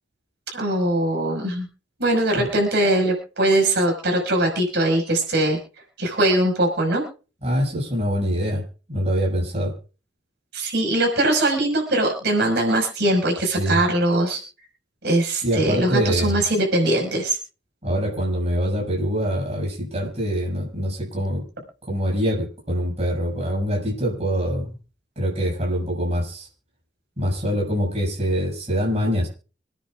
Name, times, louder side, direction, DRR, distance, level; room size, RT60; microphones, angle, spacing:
voice 1, 0.5-1.7 2.0-5.6 6.0-7.0 10.5-14.4 15.0-17.4, right 1 dB, 65° right, 1 dB, 5.6 m, -21 dB
voice 2, 7.4-8.6 8.9-9.7 13.4-13.8 15.4-16.4 17.8-21.5 21.9-24.7 25.1-26.5 27.2-29.3, equal, 35° right, -2 dB, 6.7 m, -24 dB
26.5 x 10.0 x 2.5 m, 0.36 s
head